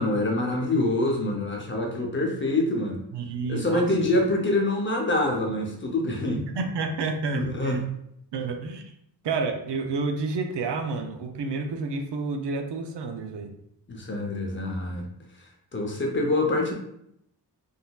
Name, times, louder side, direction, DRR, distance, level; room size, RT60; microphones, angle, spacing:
voice 1, 0.0-3.0 3.5-6.4 7.3-7.8 13.9-15.1 15.7-16.7, left 2 dB, 30° left, 0 dB, 0.6 m, -25 dB
voice 2, 3.1-3.8 6.5-7.8 8.3-8.9 9.2-13.5, right 4 dB, 90° right, 4 dB, 0.6 m, -30 dB
3.9 x 2.6 x 2.3 m, 0.75 s
wide cardioid pair, 150°, 40 cm